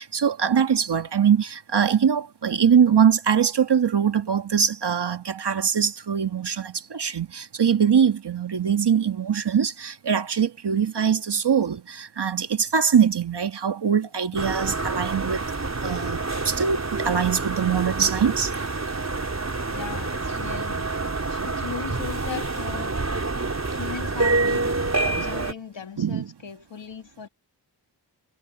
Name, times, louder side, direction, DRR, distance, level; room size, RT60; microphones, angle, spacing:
voice 1, 0.0-15.4 15.8-18.5 21.4-21.6 24.4-24.5 24.8-25.2 26.0-26.3, right 7 dB, 65° right, 1.7 m, -22 dB
sound 1, 14.4-25.5, right 3 dB, 35° right, 4.0 m, -27 dB
voice 2, 19.7-20.9 21.3-23.0 23.8-24.7 25.0-27.3, left 7 dB, 85° left, 2.9 m, -37 dB
wide cardioid pair, 75°, 43 cm